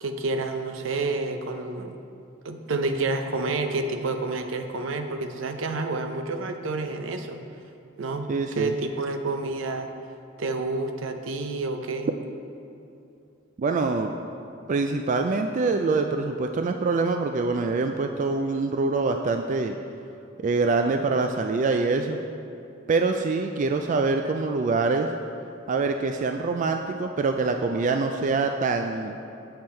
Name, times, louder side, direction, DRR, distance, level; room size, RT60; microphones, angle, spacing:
voice 1, 0.0-2.0 2.4-7.4 8.0-8.3 8.6-9.9 10.4-12.1, right 3 dB, 75° right, 6 dB, 0.6 m, -29 dB
voice 2, 8.3-8.7 13.6-14.1 14.7-19.8 20.4-22.2 22.9-25.1 25.7-29.2, right 3 dB, 40° right, 5 dB, 0.3 m, -25 dB
7.8 x 7.4 x 4.3 m, 2.7 s
head